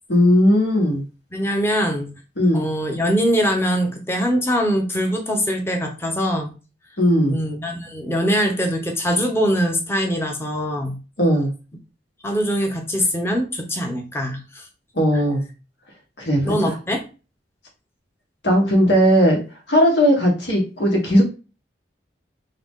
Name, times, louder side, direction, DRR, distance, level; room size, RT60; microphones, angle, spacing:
voice 1, 0.1-1.0 2.4-2.7 7.0-7.4 11.2-11.5 14.9-15.4 16.2-16.7 18.4-19.4 19.7-21.2, equal, 75° left, 0 dB, 1.7 m, -17 dB
voice 2, 1.3-2.1 2.5-6.5 7.3-11.0 12.2-14.6 15.1-15.2 16.4-17.0, equal, 15° left, 2 dB, 0.8 m, -22 dB
4.0 x 2.8 x 3.7 m, 0.33 s
head